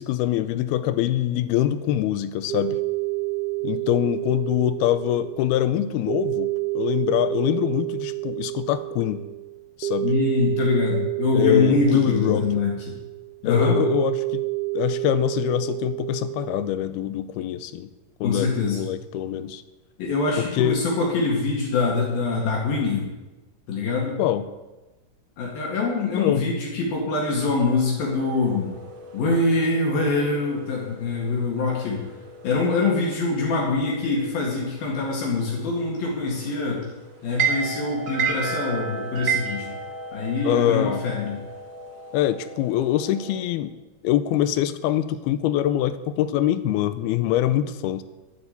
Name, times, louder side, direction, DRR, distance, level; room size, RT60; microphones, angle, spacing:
voice 1, 0.0-2.8 3.6-9.2 9.8-10.1 11.3-12.4 13.5-14.4 14.7-17.9 18.2-19.6 20.4-20.8 24.2-24.5 26.1-26.4 40.4-41.0 42.1-43.7 44.0-48.0, left 12 dB, 85° left, 13 dB, 2.6 m, -24 dB
sound 1, 2.5-16.7, right 23 dB, 85° right, 3.0 m, -29 dB
voice 2, 10.0-13.0 13.4-13.8 18.2-18.8 20.0-23.1 23.7-24.2 25.4-28.7 29.1-32.0 32.4-36.9 37.2-39.7 40.1-41.4, left 3 dB, 70° left, -2 dB, 3.9 m, -24 dB
sound 2, 28.0-43.4, right 5 dB, 65° right, 1.1 m, -34 dB
11.0 x 9.5 x 8.3 m, 1.1 s
omnidirectional pair, 4.5 m